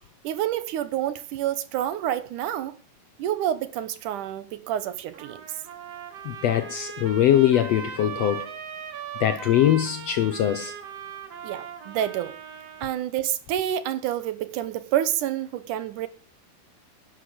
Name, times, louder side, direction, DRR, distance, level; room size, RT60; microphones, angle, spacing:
voice 1, 0.2-2.7 3.2-5.4 11.4-12.3 12.8-16.1, right 11 dB, 75° right, 2.4 m, -28 dB
Trumpet, 5.1-13.0, right 8 dB, 55° right, 2.6 m, -39 dB
voice 2, 6.2-8.5 9.2-10.7, left 11 dB, 70° left, 1.6 m, -22 dB
11.5 x 10.0 x 6.4 m
omnidirectional pair, 3.8 m